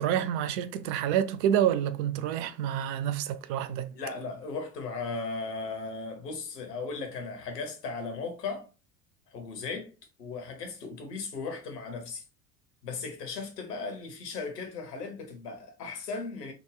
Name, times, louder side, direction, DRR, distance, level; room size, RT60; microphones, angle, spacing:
voice 1, 0.0-3.9, right 10 dB, 45° right, 0.4 m, -28 dB
voice 2, 3.9-8.7 9.3-9.9 10.2-12.2 12.8-16.5, left 4 dB, 75° left, 1.0 m, -37 dB
3.6 x 2.2 x 3.3 m
figure-of-eight pair, 65°, 49 cm